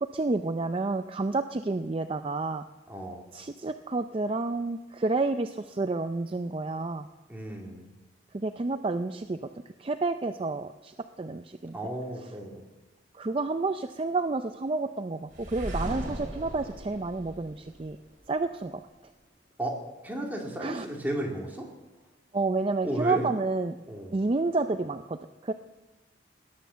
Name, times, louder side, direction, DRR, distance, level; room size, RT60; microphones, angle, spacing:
voice 1, 0.0-2.6 3.3-7.1 8.3-9.4 9.8-11.8 13.1-18.0 18.3-18.8 20.6-20.9 22.3-23.8 24.1-25.5, right 3 dB, 30° right, 8 dB, 0.4 m, -30 dB
voice 2, 2.9-3.2 7.3-7.9 11.7-12.6 19.6-19.8 20.0-21.7 22.8-23.3 23.8-24.2, right 1 dB, 10° right, -1 dB, 2.5 m, -34 dB
sound 1, 15.3-18.3, right 1 dB, 50° right, 5.2 m, -37 dB
18.5 x 11.5 x 6.9 m, 1.1 s
head